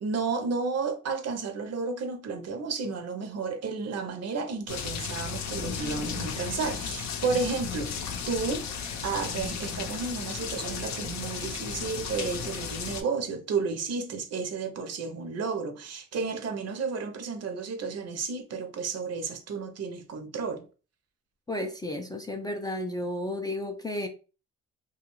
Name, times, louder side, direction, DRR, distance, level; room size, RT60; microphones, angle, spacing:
voice 1, 0.0-7.9 8.3-8.6 9.0-20.6, right 4 dB, 55° right, 0.6 m, -32 dB
sound 1, 4.7-13.0, left 6 dB, 65° left, 0.6 m, -34 dB
voice 2, 21.5-24.1, left 1 dB, 15° left, 0.3 m, -32 dB
2.4 x 2.3 x 2.9 m
cardioid pair, 90°, 30 cm